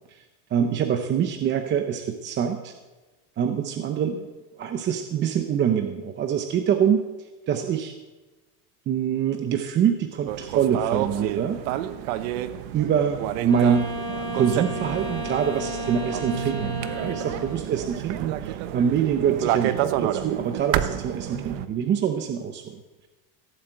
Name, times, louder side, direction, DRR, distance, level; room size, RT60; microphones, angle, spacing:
voice 1, 0.1-2.7 3.4-4.3 4.6-7.9 8.9-11.6 12.7-13.9 14.3-22.8, right 8 dB, 25° right, 6 dB, 0.8 m, -25 dB
sound 1, 10.3-21.7, right 12 dB, 75° right, 1.1 m, -30 dB
Wind instrument woodwind instrument, 13.4-17.8, equal, 10° left, 2.6 m, -33 dB
16.5 x 8.1 x 8.9 m, 1.2 s
cardioid pair, 170°, 40 cm